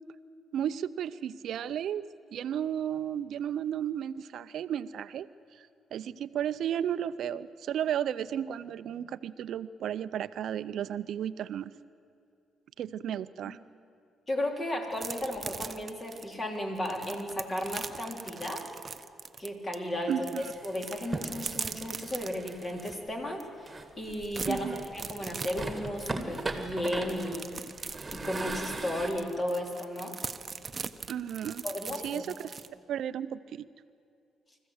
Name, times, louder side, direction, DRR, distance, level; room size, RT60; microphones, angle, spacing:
voice 1, 0.5-2.1 2.3-5.3 5.9-11.7 12.8-13.6 20.1-20.4 24.4-24.9 31.1-31.6 32.0-32.5 32.9-33.7, right 9 dB, 70° right, 15 dB, 0.5 m, -33 dB
voice 2, 14.3-18.6 19.4-23.7 24.0-24.7 24.9-27.5 28.1-30.1 31.6-32.2, left 1 dB, 30° left, 2 dB, 3.4 m, -34 dB
sound 1, 14.9-19.8 20.1-22.9 23.4-23.5 23.8-32.7, right 5 dB, 35° right, 0.8 m, -41 dB
sound 2, 20.4-23.0 23.7-25.0 25.3-29.1, right 2 dB, 20° right, 2.0 m, -38 dB
25.0 x 15.0 x 8.0 m, 2.5 s
cardioid pair, 90°, 0 cm